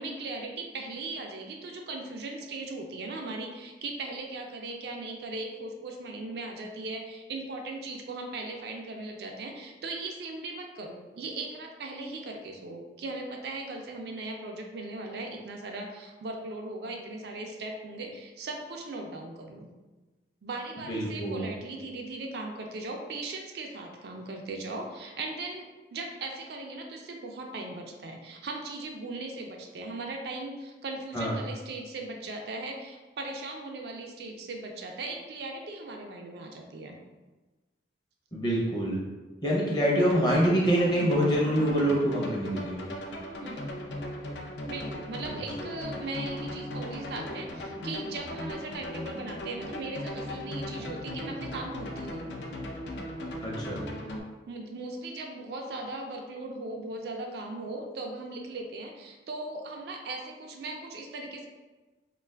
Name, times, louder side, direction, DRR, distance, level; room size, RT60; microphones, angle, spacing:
voice 1, 0.0-19.7 20.4-37.0 43.4-43.6 44.7-52.3 54.5-61.5, right 2 dB, 60° right, 2 dB, 0.3 m, -38 dB
voice 2, 20.9-21.5 31.1-31.3 38.3-39.0 39.4-42.8 53.4-53.8, equal, 25° left, -4 dB, 0.6 m, -25 dB
sound 1, 40.0-54.2, left 1 dB, 75° left, 0.4 m, -38 dB
2.4 x 2.3 x 3.3 m, 1.2 s
head